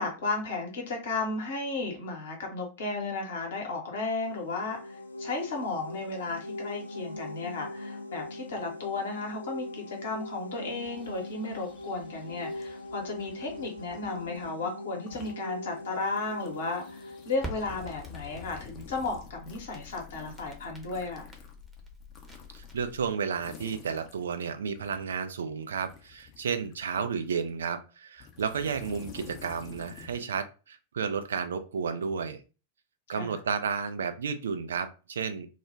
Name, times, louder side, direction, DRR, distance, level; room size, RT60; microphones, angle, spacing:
voice 1, 0.0-21.3 33.1-33.3, left 3 dB, 60° left, 2 dB, 0.9 m, -34 dB
sound 1, 4.0-18.7, left 2 dB, 85° left, 0.3 m, -41 dB
sound 2, 10.8-14.5 14.9-15.4 15.7-25.2 25.7-27.6 28.2-30.2, left 7 dB, 35° left, 0.6 m, -50 dB
Crackle, 17.4-23.1, equal, 10° right, 0.8 m, -46 dB
voice 2, 22.5-32.4 33.1-35.5, right 6 dB, 65° right, 9 dB, 0.4 m, -32 dB
2.3 x 2.1 x 3.2 m, 0.33 s
figure-of-eight pair, 90°, 0 cm